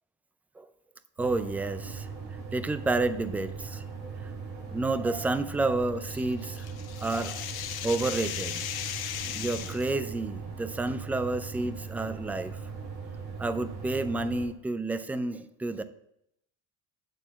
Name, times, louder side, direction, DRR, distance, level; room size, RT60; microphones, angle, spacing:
voice 1, 1.2-6.7 7.0-7.5 7.8-8.6 9.2-12.6 13.4-15.8, right 2 dB, 5° right, 12 dB, 0.4 m, -30 dB
sound 1, 1.2-14.4, right 5 dB, 80° right, 4.0 m, -39 dB
sound 2, 6.1-9.9, left 11 dB, 55° left, 1.0 m, -37 dB
9.1 x 4.2 x 7.3 m, 0.75 s
supercardioid pair, 100°, 44 cm